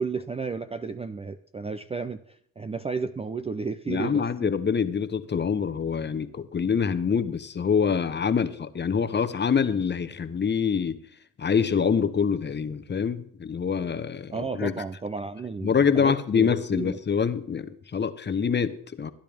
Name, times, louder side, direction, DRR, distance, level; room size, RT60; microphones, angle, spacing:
voice 1, 0.0-4.5 14.3-17.0, right 4 dB, 15° right, 11 dB, 0.5 m, -33 dB
voice 2, 3.9-11.0 11.4-14.7 15.6-19.1, left 6 dB, 25° left, 11 dB, 1.0 m, -25 dB
15.0 x 10.0 x 3.5 m, 0.62 s
supercardioid pair, 80°, 42 cm